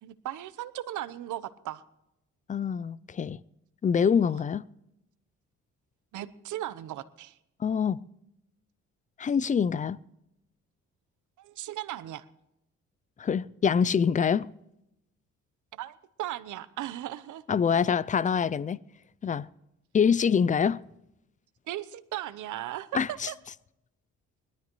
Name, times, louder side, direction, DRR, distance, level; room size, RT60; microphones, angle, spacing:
voice 1, 0.0-1.8 4.3-4.4 6.1-7.4 11.4-12.3 15.7-17.4 21.7-23.4, right 13 dB, 80° right, 0.9 m, -37 dB
voice 2, 2.5-3.4 3.8-4.6 7.6-8.0 9.2-10.0 13.2-14.5 17.5-18.8 19.2-19.5 19.9-20.8 22.9-23.3, left 7 dB, 25° left, 0.4 m, -25 dB
21.0 x 12.5 x 3.1 m
cardioid pair, 90°, 30 cm